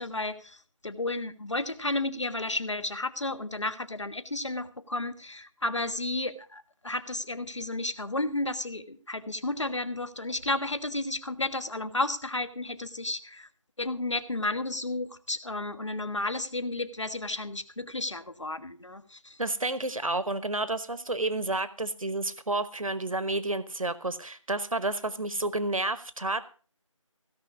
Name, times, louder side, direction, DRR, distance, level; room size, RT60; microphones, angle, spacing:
voice 1, 0.0-13.5 13.8-19.4, left 2 dB, 60° left, 11 dB, 1.4 m, -32 dB
voice 2, 19.4-26.4, right 2 dB, 90° right, 14 dB, 1.1 m, -30 dB
16.5 x 5.6 x 8.1 m, 0.39 s
figure-of-eight pair, 180°, 17 cm